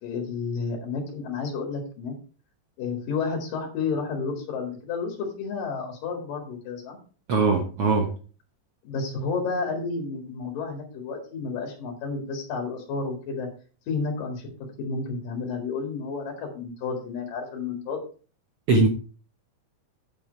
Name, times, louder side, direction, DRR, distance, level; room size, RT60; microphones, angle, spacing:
voice 1, 0.0-2.1 2.8-7.0 8.8-13.5 13.9-14.5 14.8-18.0, left 4 dB, 70° left, 3.7 m, -31 dB
voice 2, 7.3-8.1 18.7-18.9, right 3 dB, 70° right, 1.4 m, -20 dB
9.4 x 7.8 x 4.6 m
omnidirectional pair, 4.2 m